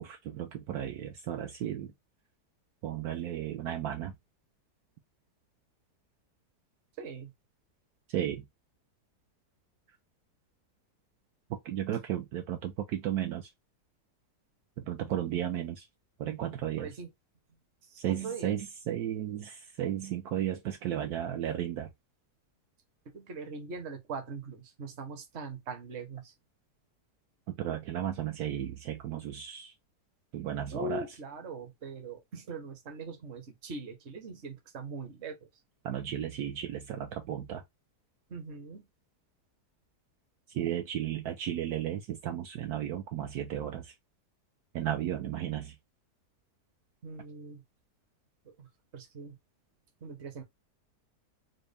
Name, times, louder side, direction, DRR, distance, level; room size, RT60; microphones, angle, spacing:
voice 1, 0.0-1.9 2.8-4.1 8.1-8.4 11.5-13.5 14.8-15.9 16.2-16.9 18.0-21.9 27.6-29.7 30.3-31.0 35.8-37.6 40.5-43.9 44.7-45.7, right 11 dB, 75° right, 1.0 m, -34 dB
voice 2, 7.0-7.3 16.8-17.1 17.8-18.6 23.0-26.3 30.7-35.5 38.3-38.9 47.0-47.6 48.4-49.4 50.0-50.4, right 3 dB, 50° right, 1.1 m, -41 dB
4.3 x 2.2 x 3.3 m
omnidirectional pair, 1.8 m